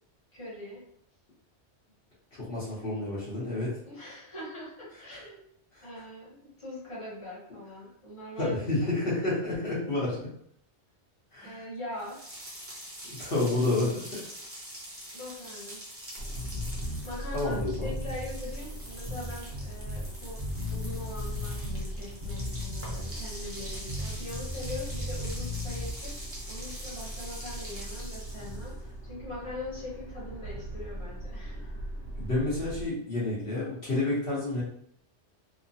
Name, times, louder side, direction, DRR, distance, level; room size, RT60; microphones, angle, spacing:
voice 1, 0.3-0.8 3.8-5.4 5.8-9.2 11.4-12.2 15.1-15.8 16.6-20.4 20.7-26.1 26.5-28.7 29.0-31.7, left 1 dB, 30° left, -7 dB, 1.1 m, -42 dB
voice 2, 2.5-3.7 5.1-5.2 5.7-5.9 8.4-10.2 11.3-11.6 13.1-14.2 17.3-17.9 32.2-34.6, left 2 dB, 55° left, -9 dB, 1.0 m, -29 dB
sound 1, 12.0-28.8, equal, 15° right, 0.5 m, -44 dB
sound 2, 16.2-32.9, right 1 dB, 85° left, 1.1 m, -40 dB
sound 3, 16.4-17.0 17.5-18.3 19.1-20.1 20.4-21.9 22.2-23.2 23.9-26.0, left 2 dB, 60° right, 0.9 m, -36 dB
3.0 x 2.1 x 2.6 m, 0.68 s
omnidirectional pair, 1.2 m